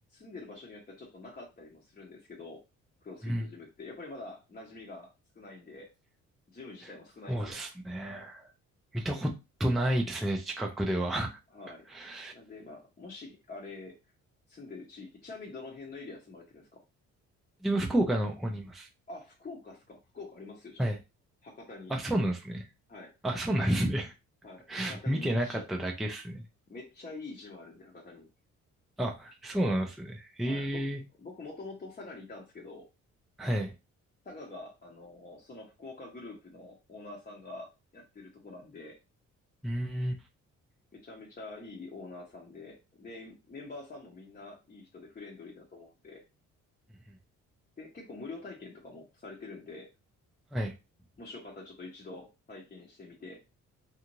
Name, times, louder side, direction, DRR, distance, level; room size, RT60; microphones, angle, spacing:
voice 1, 0.1-2.6 3.0-5.9 6.5-7.6 11.5-11.9 12.3-14.0 14.5-16.8 19.1-20.9 21.4-21.9 22.9-23.1 24.4-25.6 26.7-28.3 30.4-30.9 31.2-32.9 34.2-39.0 40.9-46.2 47.8-49.9 51.2-53.4, left 3 dB, 30° left, 0.8 m, -46 dB
voice 2, 7.3-8.4 8.9-9.3 9.6-11.4 11.9-12.3 17.6-18.9 20.8-21.0 21.9-22.6 23.2-24.1 24.7-26.4 29.0-31.0 33.4-33.7 39.6-40.2 50.5-50.7, right 1 dB, ahead, 0.5 m, -30 dB
2.6 x 2.4 x 2.9 m
cardioid pair, 90°, 30 cm